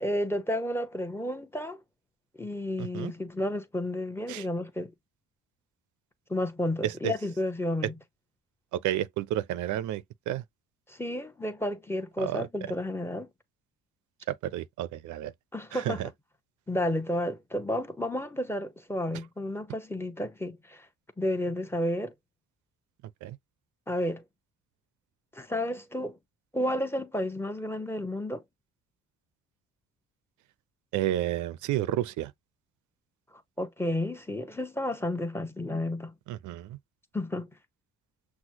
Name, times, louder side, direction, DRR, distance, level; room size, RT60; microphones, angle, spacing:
voice 1, 0.0-1.8 2.4-4.9 6.3-7.9 10.9-13.3 15.5-16.0 16.7-20.9 21.2-22.1 23.9-24.2 25.3-26.2 26.5-28.4 33.6-36.1 37.1-37.5, left 1 dB, 10° left, 0.8 m, -31 dB
voice 2, 2.8-3.1 4.3-4.5 6.8-7.1 8.7-10.4 12.2-12.7 14.3-15.3 15.7-16.1 23.2-23.4 30.9-32.3 36.3-36.8, right 13 dB, 75° right, 0.4 m, -31 dB
6.1 x 2.1 x 2.8 m
cardioid pair, 90°, 30 cm